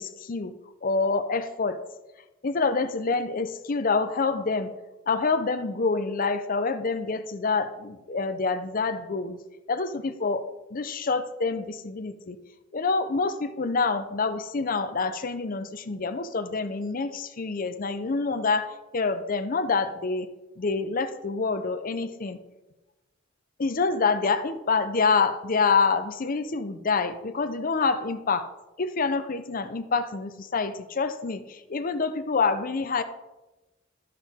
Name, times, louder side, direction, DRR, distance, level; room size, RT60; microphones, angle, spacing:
voice 1, 0.0-1.8 2.4-4.7 5.1-9.4 9.7-10.4 10.7-12.4 12.7-20.3 20.6-22.4 23.6-28.5 28.8-33.0, left 4 dB, 45° left, 10 dB, 0.6 m, -27 dB
13.0 x 5.8 x 3.6 m, 1.1 s
head